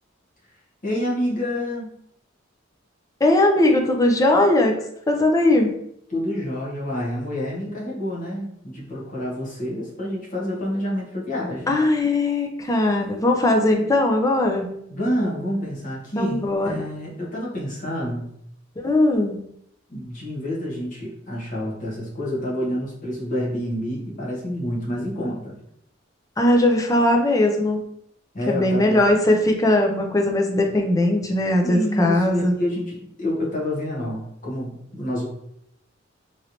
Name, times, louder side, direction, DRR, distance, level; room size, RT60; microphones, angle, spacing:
voice 1, 0.8-1.9 6.1-11.8 14.9-18.3 19.9-25.5 28.3-29.0 31.6-35.3, equal, 40° left, -4 dB, 1.0 m, -28 dB
voice 2, 3.2-4.8 5.1-5.8 11.7-14.8 16.2-16.7 18.8-19.5 26.4-27.8 28.5-32.5, left 1 dB, 15° left, 2 dB, 0.4 m, -19 dB
3.1 x 2.9 x 2.6 m, 0.73 s
head